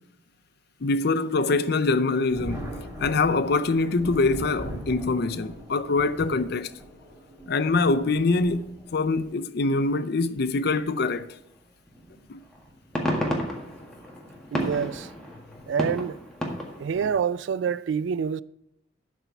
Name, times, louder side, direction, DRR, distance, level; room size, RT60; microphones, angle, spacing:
voice 1, 0.8-2.7 3.0-6.7 7.5-11.3 12.3-12.4 13.0-13.1, left 3 dB, 60° left, 0.5 m, -24 dB
Thunder, 2.3-9.4 10.4-10.5 11.9-12.2 12.6-12.7 14.6-14.8 15.5-15.9, equal, 15° right, 3.0 m, -40 dB
sound 1, 11.9-12.0 12.5-17.1, equal, 5° left, 1.6 m, -32 dB
voice 2, 14.5-15.1 15.7-16.2 16.8-18.4, right 7 dB, 70° right, 0.3 m, -27 dB
11.5 x 4.5 x 7.0 m
head